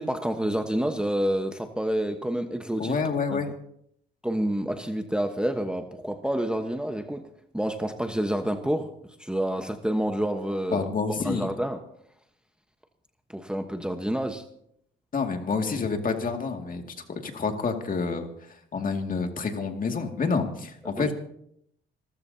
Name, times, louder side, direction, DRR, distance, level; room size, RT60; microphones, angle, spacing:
voice 1, 0.0-2.9 3.3-3.4 4.2-7.3 7.5-8.9 9.2-10.9 11.2-11.8 13.3-14.4 21.0-21.1, right 1 dB, 5° right, 6 dB, 1.2 m, -28 dB
voice 2, 2.8-3.5 10.7-11.5 15.1-18.3 18.7-21.1, left 4 dB, 45° left, 4 dB, 2.3 m, -28 dB
26.5 x 14.5 x 2.8 m, 0.70 s
cardioid pair, 90°, 20 cm